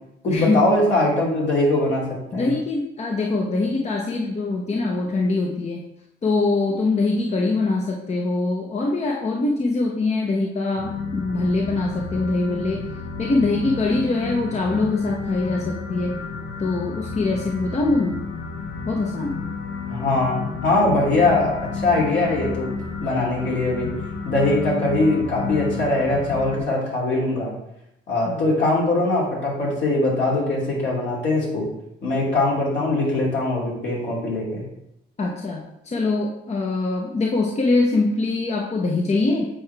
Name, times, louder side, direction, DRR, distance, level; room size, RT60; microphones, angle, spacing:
voice 1, 0.2-2.0 2.3-2.5 19.9-22.7 23.0-23.9 24.2-27.5 28.1-31.7 32.0-34.6, left 2 dB, 65° left, -4 dB, 2.7 m, -21 dB
voice 2, 2.3-5.8 6.2-12.8 13.2-16.2 16.6-18.2 18.9-19.4 28.2-28.3 35.2-39.5, left 3 dB, 35° left, 0 dB, 0.8 m, -23 dB
sound 1, 10.8-26.6, left 4 dB, 85° left, 1.0 m, -31 dB
7.7 x 4.7 x 3.4 m, 0.84 s
cardioid pair, 90°, 20 cm